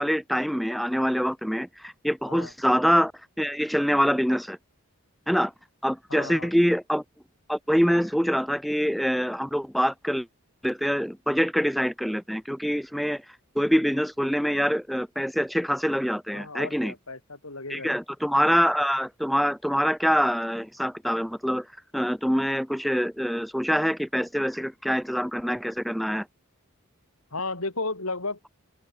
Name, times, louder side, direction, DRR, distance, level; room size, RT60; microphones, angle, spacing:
voice 1, 0.0-3.1 3.4-4.6 5.3-5.5 5.8-7.0 7.5-10.3 10.6-13.2 13.6-16.9 17.7-21.7 21.9-26.3, equal, ahead, 0.4 m, -25 dB
voice 2, 6.1-6.5 16.3-18.0 27.3-28.6, left 3 dB, 70° left, 5.2 m, -34 dB
open air
head